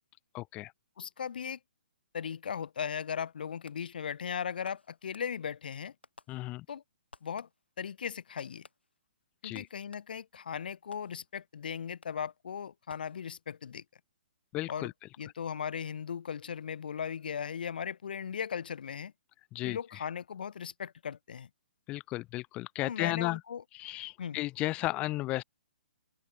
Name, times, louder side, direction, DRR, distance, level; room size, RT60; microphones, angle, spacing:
voice 1, 0.3-0.7 6.3-6.7 9.4-9.7 14.5-14.9 19.5-19.8 21.9-23.4 23.7-25.4, left 18 dB, 20° left, 0.3 m, -34 dB
voice 2, 1.0-1.6 2.1-5.9 6.7-6.8 7.2-7.5 7.8-8.7 9.4-13.8 14.7-14.9 15.2-19.1 19.6-21.5 22.8-23.6 24.2-24.4, left 7 dB, 55° left, 0.8 m, -37 dB
Fireworks, 3.7-4.1 4.6-5.6 6.0-6.8 7.1-7.8 8.4-10.4 10.9-11.5 12.0-12.4 12.9-13.6, left 3 dB, 75° left, 4.3 m, -59 dB
open air
figure-of-eight pair, 125°, 6 cm